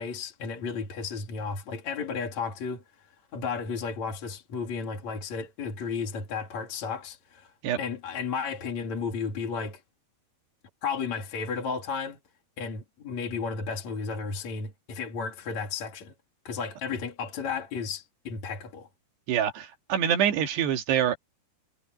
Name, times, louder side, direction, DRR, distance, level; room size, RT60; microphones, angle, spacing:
voice 1, 0.0-2.8 3.3-7.5 7.8-9.8 10.8-12.2 12.6-16.1 16.5-18.9, left 5 dB, 45° left, 3.7 m, -33 dB
voice 2, 19.3-21.2, right 9 dB, 80° right, 4.1 m, -25 dB
omnidirectional pair, 4.7 m